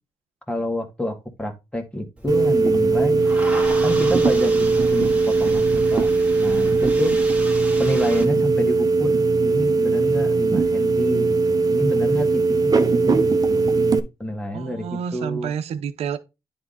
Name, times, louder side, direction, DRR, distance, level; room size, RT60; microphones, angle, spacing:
voice 1, 0.5-3.3 3.8-6.1 6.4-7.1 7.8-13.8 14.2-15.5, left 1 dB, 10° left, 2.1 m, -28 dB
sound 1, 2.2-8.2, right 1 dB, 10° right, 2.2 m, -35 dB
sound 2, 2.3-14.0, right 3 dB, 35° right, 1.1 m, -19 dB
voice 2, 14.5-16.2, right 7 dB, 75° right, 0.8 m, -29 dB
9.7 x 3.6 x 4.1 m
cardioid pair, 75°, 11 cm